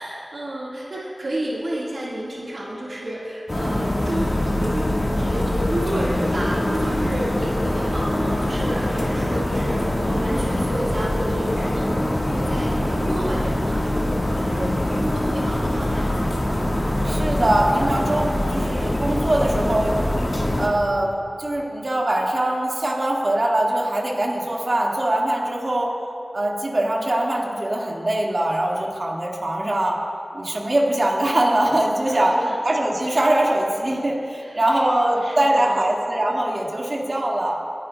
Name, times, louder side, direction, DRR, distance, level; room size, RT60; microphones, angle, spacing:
voice 1, 0.0-4.3 4.6-4.9 5.2-16.3 32.0-32.6 34.4-34.8 35.1-35.9, right 1 dB, 80° right, -6 dB, 1.8 m, -30 dB
sound 1, 3.5-20.7, left 1 dB, 45° left, 1.6 m, -23 dB
voice 2, 17.0-19.9 20.6-21.1 21.4-25.9 26.3-30.0 30.3-32.3 32.6-37.5, right 1 dB, 55° right, -3 dB, 1.9 m, -22 dB
26.0 x 10.5 x 2.3 m, 2.7 s
cardioid pair, 40°, 0 cm